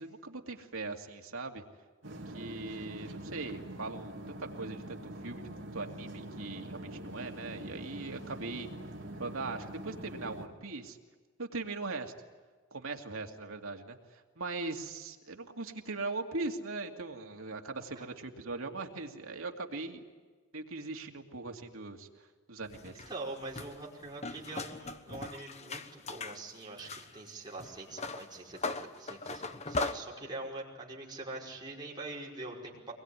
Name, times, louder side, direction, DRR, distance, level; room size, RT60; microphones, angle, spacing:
voice 1, 0.0-1.6 2.1-8.7 9.2-11.0 11.4-12.1 12.7-20.0 20.5-23.0, right 3 dB, 85° right, 3 dB, 2.5 m, -40 dB
sound 1, 2.0-10.5, right 1 dB, 60° right, 3.0 m, -44 dB
sound 2, 22.6-26.4 26.8-29.9, left 3 dB, 30° left, 1.2 m, -39 dB
voice 2, 23.1-32.9, right 2 dB, 20° right, -3 dB, 5.2 m, -43 dB
24.5 x 21.5 x 9.8 m, 1.4 s
head